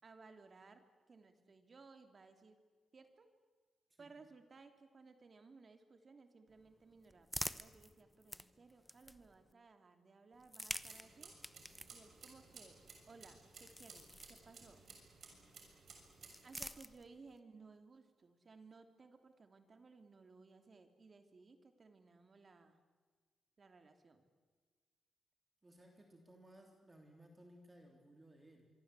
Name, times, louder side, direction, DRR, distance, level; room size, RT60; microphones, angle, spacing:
voice 1, 0.0-2.6 2.9-3.3 4.0-11.3 11.9-12.8 13.1-14.9 16.4-22.8 23.6-24.2, right 4 dB, 40° right, 7 dB, 3.0 m, -60 dB
sound 1, 6.5-9.5 10.3-14.9 15.9-17.4, equal, 5° left, 0.9 m, -49 dB
sound 2, 10.8-16.6, right 5 dB, 60° right, 6.6 m, -58 dB
voice 2, 25.6-28.7, right 1 dB, 20° right, 3 dB, 3.3 m, -61 dB
25.5 x 23.5 x 8.4 m, 1.5 s
cardioid pair, 105°, 0 cm